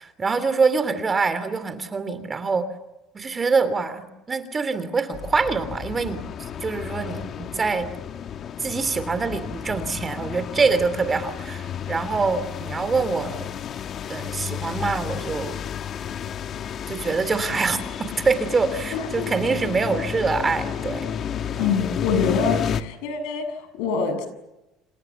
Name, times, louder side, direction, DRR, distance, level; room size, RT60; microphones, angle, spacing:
voice 1, 0.0-2.7 3.1-6.2 6.6-7.9 8.6-13.5 14.1-15.6 16.9-21.1 21.5-21.7, right 4 dB, 20° right, 12 dB, 3.1 m, -25 dB
sound 1, 5.1-22.8, left 8 dB, 40° left, 1.5 m, -32 dB
voice 2, 21.6-24.3, left 6 dB, 85° left, 9 dB, 7.2 m, -25 dB
29.0 x 28.5 x 7.2 m, 0.97 s
cardioid pair, 130°, 0 cm